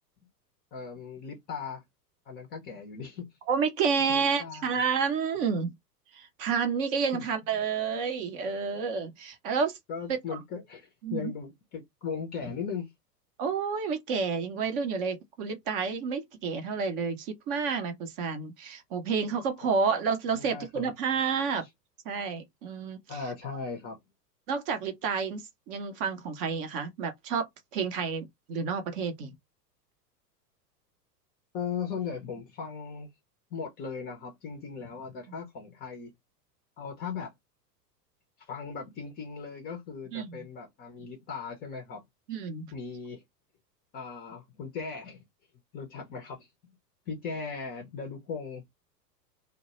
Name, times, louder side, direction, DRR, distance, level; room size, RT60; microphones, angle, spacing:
voice 1, 0.7-1.8 2.3-3.3 4.1-4.8 7.1-7.2 7.5-7.6 9.9-12.9 19.6-19.7 20.3-20.9 23.1-24.0 31.5-33.1 33.5-36.1 36.8-37.3 38.5-42.0 42.7-43.2 43.9-45.2 45.7-46.5 47.1-48.6, left 5 dB, 20° left, 0.5 m, -38 dB
voice 2, 3.5-5.7 6.1-9.8 10.3-10.4 11.0-11.3 13.4-21.7 22.1-23.2 24.5-27.5 27.7-29.3 40.1-40.4 42.3-42.7, right 5 dB, 35° right, 0.5 m, -30 dB
2.1 x 2.0 x 2.8 m
figure-of-eight pair, 100°, 49 cm